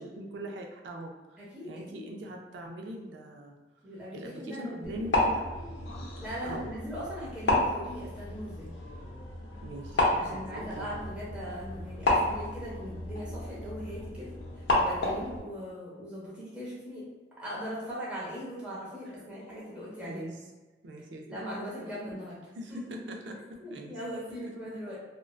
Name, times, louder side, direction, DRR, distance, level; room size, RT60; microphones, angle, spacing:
voice 1, 0.0-3.6 4.1-5.5 6.4-6.7 9.6-10.9 20.0-20.4 20.8-21.4 21.8-22.2 22.5-24.0 24.3-24.5, right 1 dB, 80° right, 2 dB, 0.4 m, -42 dB
voice 2, 1.4-2.0 3.8-5.1 6.2-8.7 10.1-14.3 14.8-17.0 17.4-20.3 21.3-22.4 22.7-22.8 23.6-25.0, equal, 5° right, -8 dB, 0.6 m, -39 dB
sound 1, 4.8-15.4, left 1 dB, 85° left, 0.5 m, -31 dB
2.5 x 2.1 x 2.3 m, 1.2 s
head